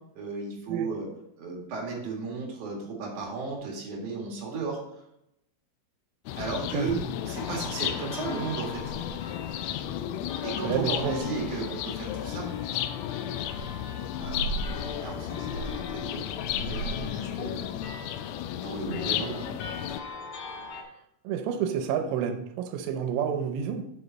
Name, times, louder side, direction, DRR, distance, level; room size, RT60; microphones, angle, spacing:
voice 1, 0.1-1.1 1.4-4.8 6.4-7.0 7.3-8.9 10.4-12.5 14.2-14.6 15.0-16.2 16.6-17.7 18.6-19.5, right 4 dB, 55° right, -1 dB, 2.5 m, -34 dB
sound 1, 6.3-20.0, left 11 dB, 90° left, 3.3 m, -34 dB
sound 2, 7.4-20.8, left 1 dB, 65° left, 2.8 m, -40 dB
voice 2, 10.6-11.2 21.2-23.9, right 8 dB, 80° right, 7 dB, 3.2 m, -29 dB
8.2 x 7.2 x 4.1 m, 0.81 s
omnidirectional pair, 5.8 m